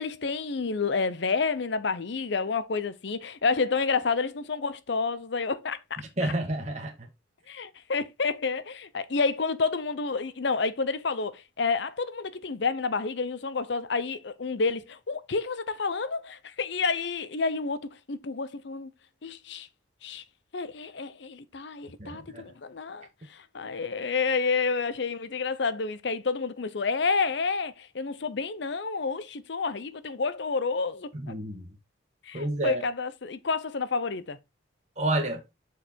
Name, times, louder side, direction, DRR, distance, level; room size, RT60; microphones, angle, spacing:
voice 1, 0.0-6.0 7.5-18.9 19.2-19.7 20.0-20.2 20.5-31.1 32.3-34.4, left 4 dB, 60° left, 0.6 m, -29 dB
voice 2, 6.2-6.9 22.0-22.4 31.1-31.7 32.3-32.8 35.0-35.4, right 1 dB, 35° right, 1.5 m, -29 dB
6.8 x 4.7 x 4.3 m
head